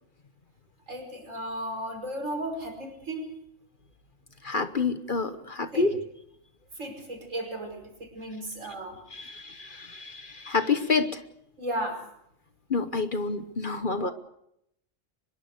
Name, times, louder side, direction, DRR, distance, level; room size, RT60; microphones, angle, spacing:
voice 1, 0.9-3.3 5.7-5.9 6.8-9.0 11.6-12.0 13.9-14.1, right 1 dB, 75° right, 4 dB, 5.7 m, -35 dB
voice 2, 4.4-6.0 9.1-11.2 12.7-14.1, left 4 dB, 45° left, 10 dB, 1.1 m, -28 dB
24.5 x 21.5 x 6.6 m, 0.77 s
omnidirectional pair, 1.3 m